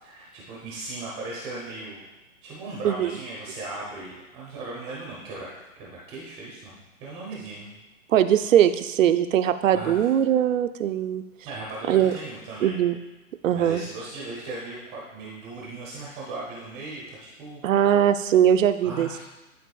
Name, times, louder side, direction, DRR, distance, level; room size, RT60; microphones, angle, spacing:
voice 1, 0.0-2.0 2.4-5.5 5.8-7.8 9.7-10.0 11.4-12.8 13.5-17.6 18.8-19.2, right 2 dB, 15° right, -5 dB, 0.6 m, -37 dB
voice 2, 8.1-11.2 11.9-12.1 12.6-13.0 13.4-13.8 17.6-19.1, right 10 dB, 65° right, 10 dB, 0.5 m, -21 dB
11.0 x 4.0 x 2.3 m, 1.1 s
hypercardioid pair, 145°, 43 cm